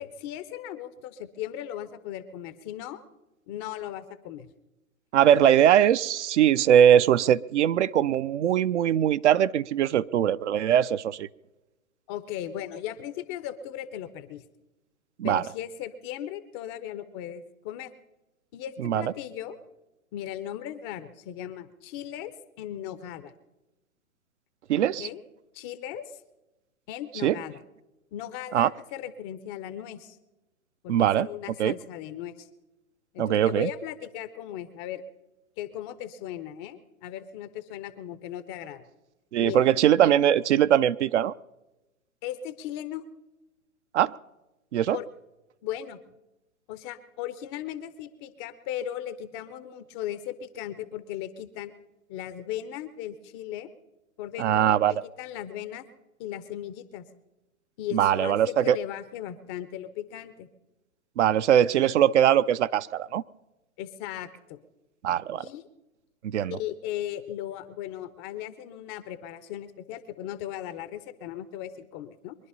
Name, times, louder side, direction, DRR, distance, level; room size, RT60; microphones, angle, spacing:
voice 1, 0.0-3.0 3.5-4.5 12.1-14.4 15.2-17.9 18.5-19.6 20.1-22.3 22.6-23.3 24.8-25.2 25.5-26.2 26.9-27.6 28.1-30.2 30.8-32.5 33.1-35.0 35.6-38.8 39.4-39.6 42.2-43.0 44.9-45.1 45.6-46.0 46.7-51.7 52.1-53.7 54.2-55.9 56.2-57.0 57.8-60.5 63.8-64.6 65.4-65.7 66.5-72.4, left 11 dB, 20° left, 13 dB, 0.5 m, -37 dB
voice 2, 5.1-11.3 15.2-15.4 18.8-19.1 24.7-25.1 27.2-27.4 28.5-28.7 30.9-31.3 31.6-31.8 33.2-33.7 39.3-41.3 43.9-44.1 44.7-45.0 54.4-55.0 57.9-58.8 61.2-63.2 65.0-65.5 66.2-66.6, right 10 dB, 55° right, 16 dB, 0.6 m, -21 dB
23.5 x 11.0 x 5.5 m, 1.0 s
hypercardioid pair, 125°, 42 cm